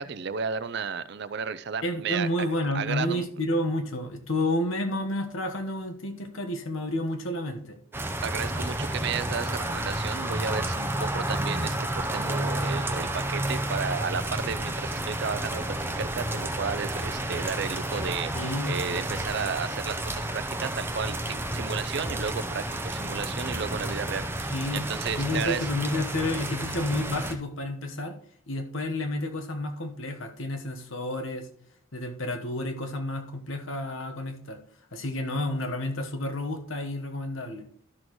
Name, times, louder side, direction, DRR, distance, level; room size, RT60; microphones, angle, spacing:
voice 1, 0.0-2.5 2.7-3.2 8.2-25.7, right 6 dB, 55° right, 14 dB, 0.4 m, -33 dB
voice 2, 1.8-7.8 18.3-18.8 24.5-24.8 25.2-28.2 28.5-31.5 31.9-34.6 34.9-37.6, left 1 dB, 70° left, 5 dB, 1.2 m, -30 dB
sound 1, 7.9-27.3, right 1 dB, 10° right, 0.6 m, -31 dB
12.5 x 6.3 x 3.1 m, 0.63 s
head